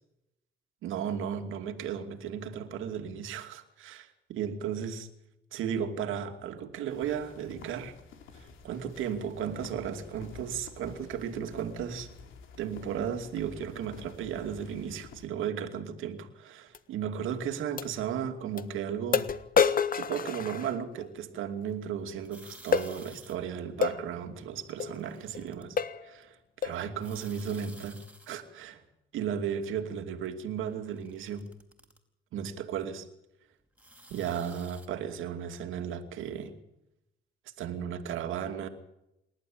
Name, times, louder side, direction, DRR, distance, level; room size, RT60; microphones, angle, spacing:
voice 1, 0.8-5.1 5.5-7.9 8.4-12.1 12.6-19.3 19.9-28.8 29.1-31.5 32.3-33.1 34.1-36.6 37.6-38.7, right 8 dB, 85° right, 7 dB, 2.6 m, -35 dB
sound 1, 6.9-15.3, left 4 dB, 80° left, 3.4 m, -50 dB
sound 2, 16.7-16.8 17.8-17.9 18.6-18.7 19.1-21.1 22.7-22.9 23.8-24.0 24.8-25.0 25.3-25.5 25.8-26.1 26.6-26.9, left 6 dB, 45° left, 1.4 m, -28 dB
sound 3, 22.2-23.3 24.6-25.6 27.0-28.3 30.7-32.0 33.8-34.9, right 1 dB, 5° right, 4.6 m, -53 dB
27.5 x 12.0 x 8.8 m, 0.86 s
cardioid pair, 90°, 20 cm